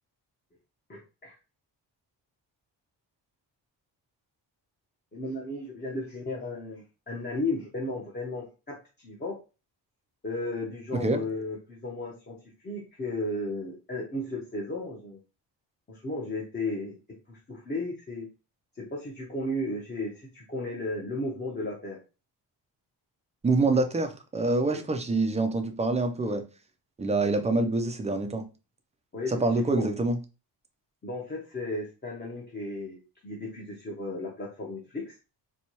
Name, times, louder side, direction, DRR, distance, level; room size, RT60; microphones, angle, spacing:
voice 1, 0.9-1.4 5.1-9.4 10.2-15.2 15.9-17.0 17.3-18.3 18.8-22.0 24.7-24.8 29.1-29.9 31.0-35.1, left 2 dB, 25° left, 0.8 m, -34 dB
voice 2, 23.4-26.4 27.0-28.5 29.3-30.2, right 2 dB, 15° right, 0.4 m, -26 dB
4.3 x 2.3 x 2.9 m
cardioid pair, 130°, 44 cm